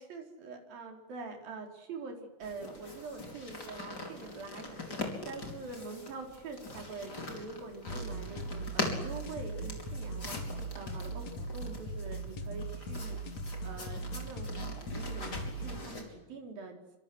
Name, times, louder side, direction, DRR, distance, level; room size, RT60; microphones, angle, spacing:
voice 1, 0.0-10.4 10.7-13.2 13.6-14.5 14.9-16.8, right 3 dB, 55° right, 2 dB, 6.0 m, -44 dB
sound 1, 2.4-16.0, left 2 dB, 25° left, 5.1 m, -42 dB
sound 2, 7.9-15.9, right 2 dB, 45° left, 3.4 m, -39 dB
27.5 x 26.0 x 8.0 m, 0.98 s
omnidirectional pair, 5.0 m